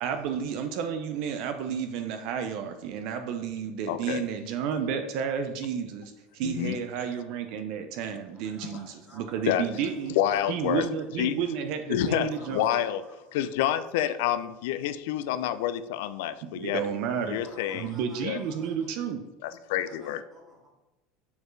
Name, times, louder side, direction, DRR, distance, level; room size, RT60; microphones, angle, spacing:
voice 1, 0.0-10.2 10.5-12.7 16.4-17.4 17.7-19.2, right 7 dB, 55° right, 7 dB, 0.5 m, -31 dB
voice 2, 3.9-4.2 6.4-6.8 9.5-9.7 10.2-10.9 11.2-11.4 11.9-13.0 13.3-16.9 17.3-17.9 18.2-18.4 19.4-20.2, left 11 dB, 75° left, 12 dB, 0.3 m, -28 dB
voice 3, 8.4-9.4 9.8-11.1 12.3-13.4 17.1-19.1 19.8-20.7, equal, 20° right, -3 dB, 1.9 m, -52 dB
6.9 x 4.3 x 3.2 m, 1.0 s
supercardioid pair, 150°, 0 cm